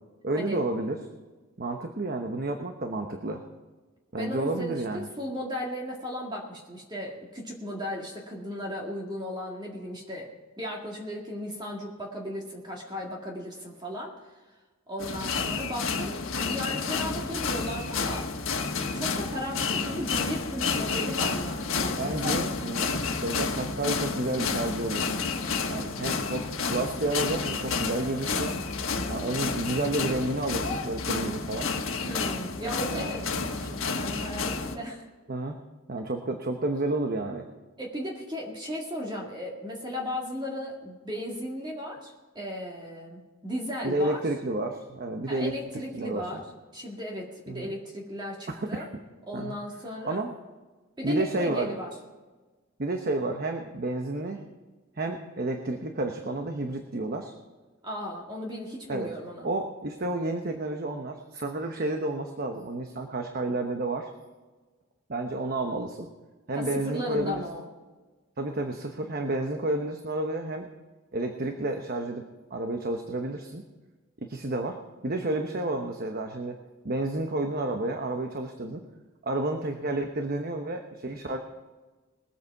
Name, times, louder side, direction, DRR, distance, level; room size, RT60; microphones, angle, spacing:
voice 1, 0.2-1.0 1.6-3.4 4.1-5.0 22.0-25.1 25.7-28.6 29.1-31.7 32.6-33.1 35.3-35.6 35.9-37.5 43.8-45.5 45.9-46.4 47.5-47.7 48.5-48.9 49.3-49.6 50.0-50.3 51.0-51.7 52.8-54.5 55.0-57.3 58.9-59.1 59.4-64.1 65.1-66.1 66.5-67.4 68.4-70.7 71.1-72.2 72.5-73.6 74.2-76.6 76.8-78.8 79.2-81.4, right 2 dB, 45° right, 4 dB, 1.0 m, -31 dB
voice 2, 4.2-10.3 10.6-14.1 14.9-18.3 18.7-22.4 32.1-35.1 37.8-44.2 45.3-46.4 46.7-48.9 49.3-50.2 51.0-51.9 57.8-59.5 66.5-67.7, equal, 20° right, -1 dB, 1.9 m, -36 dB
sound 1, 15.0-34.8, left 4 dB, 75° left, 1.5 m, -30 dB
21.0 x 8.3 x 4.6 m, 1.3 s
head